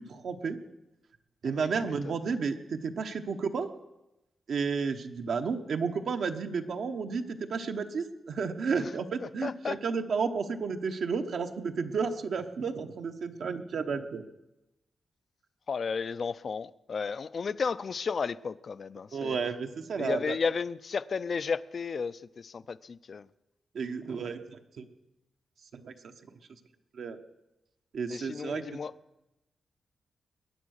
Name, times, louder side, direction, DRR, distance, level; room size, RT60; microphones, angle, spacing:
voice 1, 0.1-0.6 1.4-3.7 4.5-14.2 19.1-20.4 23.7-24.9 25.7-25.9 26.9-27.2 27.9-28.8, right 5 dB, 70° right, 5 dB, 1.1 m, -32 dB
voice 2, 9.2-9.8 15.7-19.4 20.0-23.3 28.1-28.9, left 5 dB, 45° left, 16 dB, 0.4 m, -33 dB
21.5 x 9.4 x 6.5 m, 0.95 s
wide cardioid pair, 135°, 0 cm